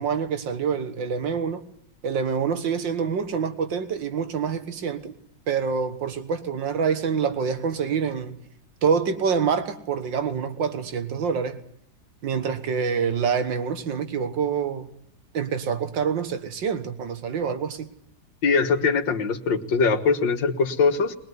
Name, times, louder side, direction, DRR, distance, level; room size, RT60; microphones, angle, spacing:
voice 1, 0.0-1.6 2.0-5.1 5.5-8.4 8.8-11.6 12.2-14.9 15.3-17.9, right 6 dB, 85° right, 2.1 m, -26 dB
voice 2, 18.4-21.2, left 4 dB, 85° left, 2.3 m, -22 dB
21.5 x 21.0 x 9.6 m
omnidirectional pair, 1.9 m